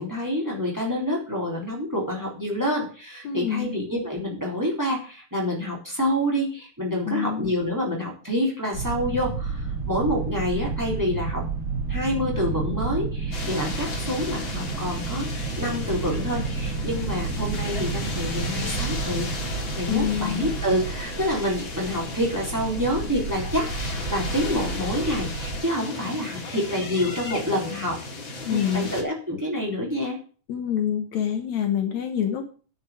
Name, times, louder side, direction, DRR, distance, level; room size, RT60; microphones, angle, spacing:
voice 1, 0.0-11.4 11.9-19.3 19.8-28.0 28.5-30.2, equal, 5° right, -2 dB, 3.7 m, -27 dB
voice 2, 3.2-3.7 7.1-7.5 19.9-20.5 28.4-28.9 30.5-32.5, left 9 dB, 70° left, 6 dB, 2.4 m, -26 dB
sound 1, 8.7-25.6, right 4 dB, 25° right, 5.1 m, -31 dB
sound 2, 13.3-29.0, left 2 dB, 40° left, 2.9 m, -35 dB
9.5 x 6.6 x 8.6 m, 0.39 s
omnidirectional pair, 3.5 m